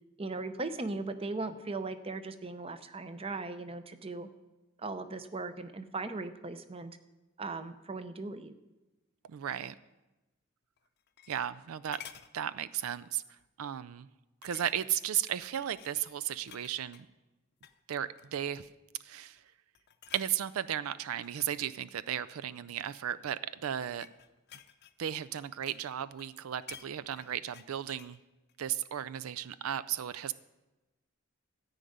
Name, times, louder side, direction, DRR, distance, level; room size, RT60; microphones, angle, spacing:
voice 1, 0.2-4.3 4.8-7.0 7.4-8.6, right 3 dB, 25° right, 10 dB, 0.6 m, -38 dB
voice 2, 9.3-9.7 11.3-12.0 12.3-13.2 13.6-14.1 14.4-17.1 17.9-18.7 19.0-19.4 20.1-24.1 25.0-28.2 28.6-30.3, right 10 dB, 85° right, 14 dB, 0.4 m, -35 dB
sound 1, 10.8-11.6 11.9-12.3 12.8-13.1 13.4-13.5 14.4-15.1 15.4-17.1 17.5-17.8 18.2-18.7 19.2-19.5 19.7-20.3 21.1-22.7 23.5-25.9 26.2-28.2 28.5-28.6, left 10 dB, 50° left, 0.6 m, -53 dB
14.0 x 5.3 x 9.2 m, 1.1 s
head